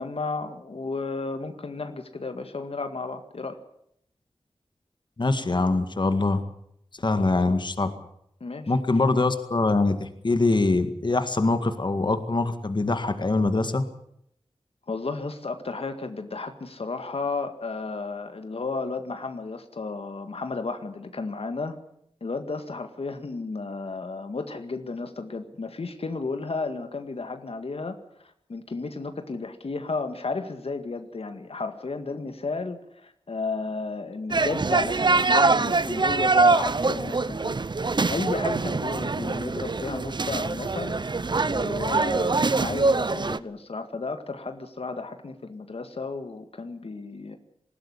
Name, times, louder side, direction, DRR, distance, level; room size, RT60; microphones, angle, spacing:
voice 1, 0.0-3.6 7.2-7.6 8.4-8.7 14.9-21.8 22.2-28.0 28.2-41.0 41.5-47.4, left 3 dB, 65° left, 8 dB, 1.9 m, -33 dB
voice 2, 5.2-6.4 7.0-7.9 8.7-13.8, left 3 dB, 45° left, 9 dB, 1.9 m, -23 dB
sound 1, 34.3-43.4, right 3 dB, 45° right, 0.8 m, -24 dB
20.0 x 16.0 x 9.9 m, 0.73 s
wide cardioid pair, 70°, 11 cm